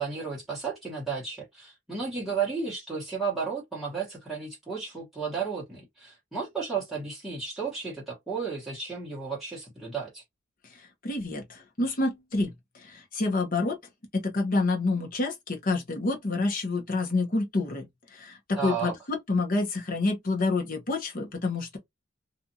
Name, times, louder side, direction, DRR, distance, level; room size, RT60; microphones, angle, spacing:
voice 1, 0.0-10.2 18.6-19.0, right 5 dB, ahead, 1.0 m, -33 dB
voice 2, 11.0-12.5 12.9-13.8 14.1-17.9 18.2-21.8, left 3 dB, 45° left, 0.8 m, -28 dB
2.6 x 2.4 x 2.6 m
head